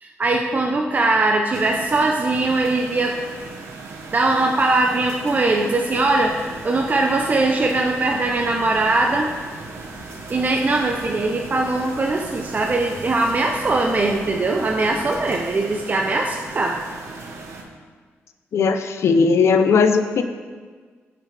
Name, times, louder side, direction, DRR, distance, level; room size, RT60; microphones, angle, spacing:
voice 1, 0.0-3.2 4.1-6.4 6.6-9.3 10.3-16.8, right 2 dB, 35° right, 1 dB, 0.8 m, -21 dB
sound 1, 1.5-17.6, right 3 dB, 80° right, 1.2 m, -38 dB
sound 2, 5.8-15.3, right 1 dB, 55° right, 2.6 m, -43 dB
voice 2, 18.5-20.2, left 5 dB, 70° left, 8 dB, 0.7 m, -17 dB
16.0 x 6.0 x 3.4 m, 1.5 s
cardioid pair, 90°, 5 cm